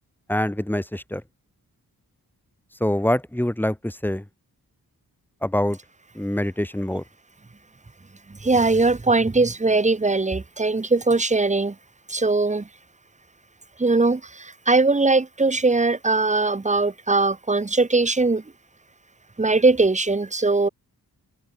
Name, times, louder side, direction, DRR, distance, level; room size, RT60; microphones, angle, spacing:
voice 1, 0.3-1.2 2.8-4.2 5.4-5.8 6.2-7.0, left 1 dB, 5° left, 2.6 m, -24 dB
voice 2, 8.3-11.8 12.1-12.7 13.8-18.4 19.4-20.7, right 3 dB, 20° right, 1.0 m, -20 dB
wide cardioid pair, 115°, 37 cm